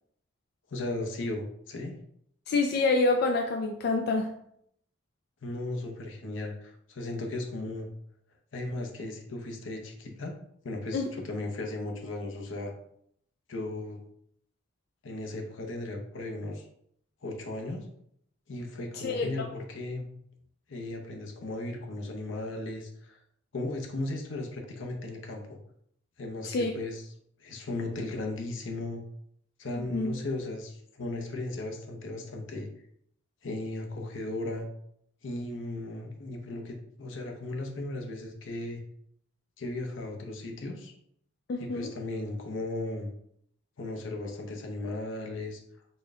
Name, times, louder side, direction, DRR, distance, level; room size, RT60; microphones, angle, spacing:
voice 1, 0.7-1.9 5.4-7.9 8.5-10.4 10.6-12.7 13.5-14.0 15.0-16.6 17.2-17.9 18.5-20.1 20.7-23.2 23.5-25.6 26.2-27.0 27.4-29.0 29.6-32.7 33.4-34.7 35.2-38.8 39.6-40.9 41.6-43.1 43.8-45.6, left 2 dB, 85° left, 2 dB, 0.7 m, -36 dB
voice 2, 2.5-4.3 10.9-11.1 18.9-19.3 26.4-26.7 29.9-30.1 41.5-41.9, left 3 dB, 55° left, 3 dB, 0.3 m, -27 dB
4.2 x 2.2 x 3.6 m, 0.70 s
head